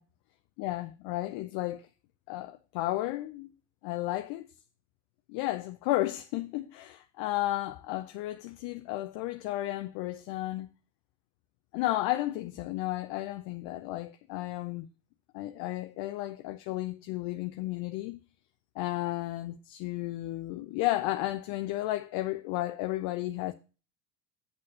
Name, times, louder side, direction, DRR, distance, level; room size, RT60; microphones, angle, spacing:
voice 1, 0.6-1.9 2.3-3.5 3.8-4.5 5.3-10.7 11.7-14.9 15.3-18.2 18.8-23.5, left 16 dB, 55° left, 0.8 m, -33 dB
8.6 x 6.4 x 5.4 m
hypercardioid pair, 65°, 48 cm